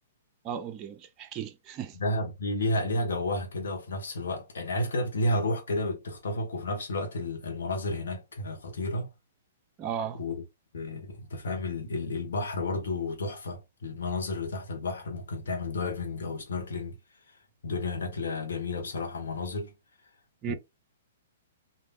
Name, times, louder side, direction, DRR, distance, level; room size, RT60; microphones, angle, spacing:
voice 1, 0.4-2.0 9.8-10.2 20.4-20.5, right 9 dB, 30° right, 0.4 m, -35 dB
voice 2, 1.9-9.1 10.2-10.4 10.7-17.0 17.6-19.7 20.5-20.6, left 2 dB, 75° left, 1.2 m, -31 dB
3.3 x 2.7 x 2.3 m
hypercardioid pair, 125°, 0 cm